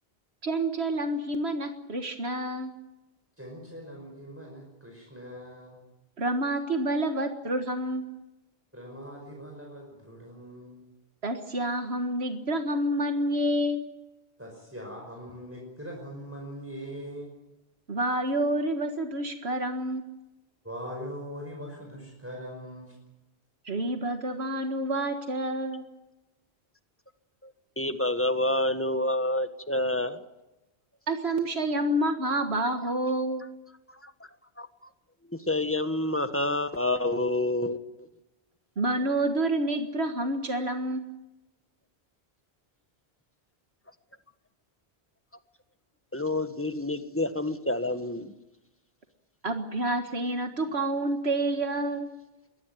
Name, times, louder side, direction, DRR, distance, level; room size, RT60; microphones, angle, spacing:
voice 1, 0.4-2.7 6.2-8.1 11.2-13.8 17.9-20.0 23.7-25.8 31.1-33.4 38.8-41.1 49.4-52.1, right 1 dB, 80° right, 6 dB, 2.0 m, -28 dB
voice 2, 3.4-5.8 8.7-10.8 14.4-17.3 20.6-23.0, equal, 15° right, -1 dB, 5.6 m, -41 dB
voice 3, 27.8-30.2 34.0-34.1 34.6-34.7 35.3-38.1 46.1-48.3, left 1 dB, 10° left, 9 dB, 1.5 m, -28 dB
22.5 x 19.0 x 9.2 m, 1.0 s
omnidirectional pair, 1.1 m